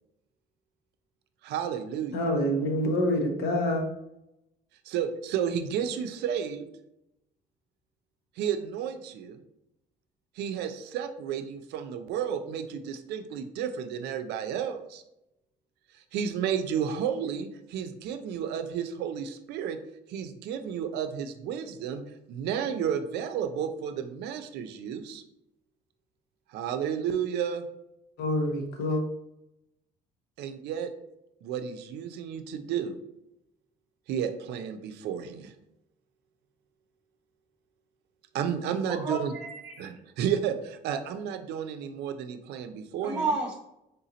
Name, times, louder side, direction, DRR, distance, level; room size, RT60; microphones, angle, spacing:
voice 1, 1.4-2.2 4.8-6.7 8.4-9.4 10.4-15.0 16.1-19.8 20.1-25.2 26.5-27.7 30.4-30.9 31.4-33.0 34.1-35.5 38.3-39.3 39.8-43.4, right 8 dB, 80° right, 8 dB, 0.5 m, -32 dB
voice 2, 2.1-3.8 28.2-29.0, left 1 dB, 75° left, 3 dB, 0.9 m, -26 dB
voice 3, 38.9-40.0 43.0-43.5, right 3 dB, 20° right, -2 dB, 0.7 m, -31 dB
3.7 x 2.8 x 3.8 m, 0.85 s
cardioid pair, 110°, 17 cm